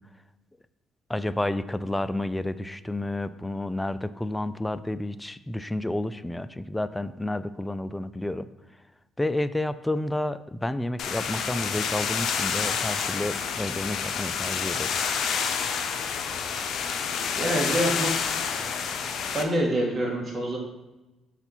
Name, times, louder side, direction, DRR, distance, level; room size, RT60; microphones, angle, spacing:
voice 1, 1.1-8.5 9.2-14.9, left 1 dB, 10° left, 14 dB, 0.3 m, -30 dB
sound 1, 11.0-19.4, left 6 dB, 65° left, 0.6 m, -29 dB
voice 2, 17.4-18.1 19.3-20.6, right 1 dB, 30° right, -1 dB, 1.9 m, -26 dB
6.7 x 4.1 x 4.4 m, 1.0 s
cardioid pair, 80°, 0 cm